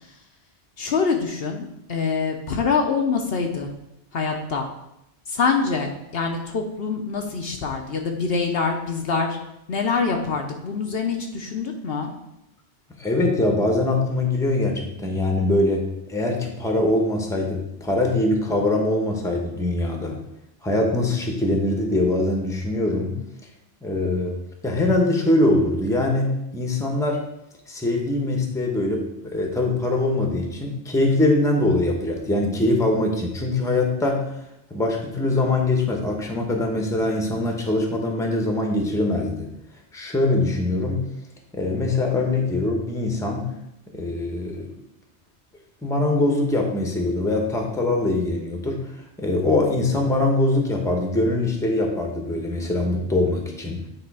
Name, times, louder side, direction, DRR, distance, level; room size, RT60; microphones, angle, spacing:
voice 1, 0.8-3.7 4.1-4.7 5.3-9.4 9.7-12.1, left 5 dB, 65° left, 3 dB, 0.9 m, -25 dB
voice 2, 13.0-20.2 20.6-23.2 23.8-24.4 24.6-27.2 27.7-34.3 34.7-39.5 39.9-41.0 41.5-43.5 43.9-44.9 45.8-48.9 49.2-53.9, left 2 dB, 5° left, 1 dB, 0.9 m, -23 dB
8.9 x 3.3 x 4.7 m, 0.83 s
omnidirectional pair, 1.1 m